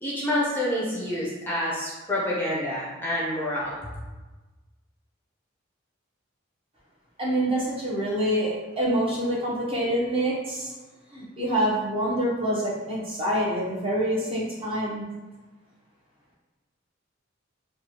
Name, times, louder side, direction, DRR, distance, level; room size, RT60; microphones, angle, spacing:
voice 1, 0.0-3.8, left 1 dB, 10° left, -7 dB, 0.5 m, -28 dB
voice 2, 7.2-10.7 11.1-15.0, right 1 dB, 30° right, -6 dB, 0.8 m, -26 dB
3.0 x 2.2 x 2.8 m, 1.2 s
head